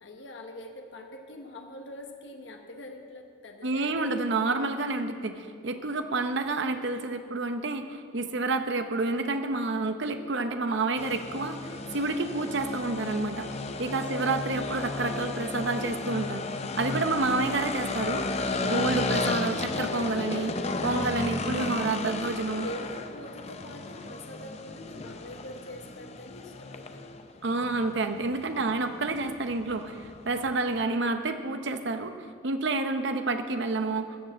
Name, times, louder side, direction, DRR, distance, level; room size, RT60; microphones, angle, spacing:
voice 1, 0.0-4.2 14.0-14.2 20.6-20.8 22.2-27.0, left 1 dB, 65° left, 3 dB, 1.1 m, -44 dB
voice 2, 3.6-13.5 13.8-16.5 16.8-18.2 18.6-20.5 20.8-22.7 27.4-34.3, right 3 dB, 60° right, 8 dB, 0.7 m, -29 dB
sound 1, 11.0-30.8, left 3 dB, 30° left, 0.6 m, -34 dB
14.0 x 6.7 x 7.4 m, 2.1 s
head